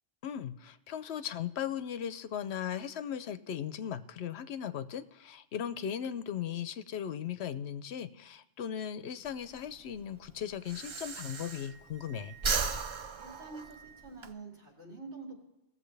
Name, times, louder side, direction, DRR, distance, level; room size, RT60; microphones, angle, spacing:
voice 1, 0.2-12.4, left 9 dB, 70° left, 13 dB, 0.9 m, -37 dB
Breathing, 9.2-12.0 12.3-14.3, right 4 dB, 45° right, 0.4 m, -36 dB
Wind instrument woodwind instrument, 10.3-14.2, right 7 dB, 65° right, 3.8 m, -57 dB
voice 2, 13.2-15.4, right 3 dB, 90° right, -1 dB, 2.8 m, -46 dB
17.5 x 7.4 x 3.3 m, 0.99 s
omnidirectional pair, 1.1 m